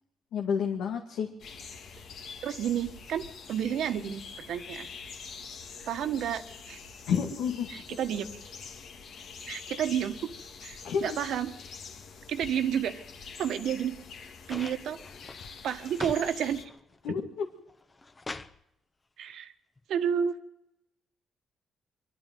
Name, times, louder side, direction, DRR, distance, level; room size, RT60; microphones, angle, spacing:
voice 1, 0.3-1.3 7.1-7.7 10.8-11.2 17.0-17.4, left 7 dB, 85° left, 2 dB, 2.0 m, -29 dB
sound 1, 1.4-16.6, left 5 dB, 70° left, 2.1 m, -45 dB
voice 2, 2.4-3.2 3.5-4.9 5.9-6.8 7.7-8.3 9.5-10.2 10.6-11.5 12.3-13.0 13.4-13.9 14.5-15.0 15.6-16.6 17.1-17.2 19.2-19.5 19.9-20.3, right 9 dB, 75° right, 9 dB, 1.5 m, -30 dB
sound 2, 14.5-16.3 16.6-17.2 17.7-18.6 19.8-19.9, left 3 dB, 25° left, 1.1 m, -42 dB
24.0 x 12.0 x 9.4 m, 0.87 s
cardioid pair, 90°, 0 cm